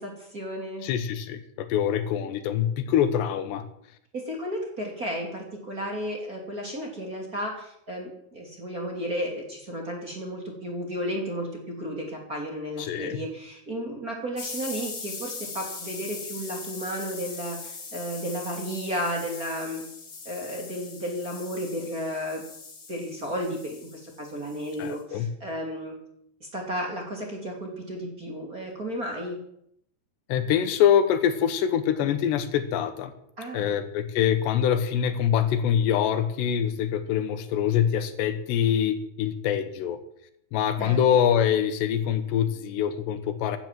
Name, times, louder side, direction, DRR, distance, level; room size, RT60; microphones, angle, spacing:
voice 1, 0.0-0.9 4.1-11.5 11.8-19.8 20.2-22.4 22.9-25.9 26.4-29.4 33.4-33.7 40.8-41.0, equal, 25° right, 0 dB, 2.6 m, -33 dB
voice 2, 0.8-3.6 12.8-13.2 24.8-25.3 30.3-33.1 33.5-40.0 40.5-43.6, left 9 dB, 85° left, 10 dB, 3.4 m, -24 dB
sound 1, 14.4-25.0, left 4 dB, 35° left, 3.2 m, -41 dB
15.5 x 11.0 x 7.5 m, 0.73 s
omnidirectional pair, 4.9 m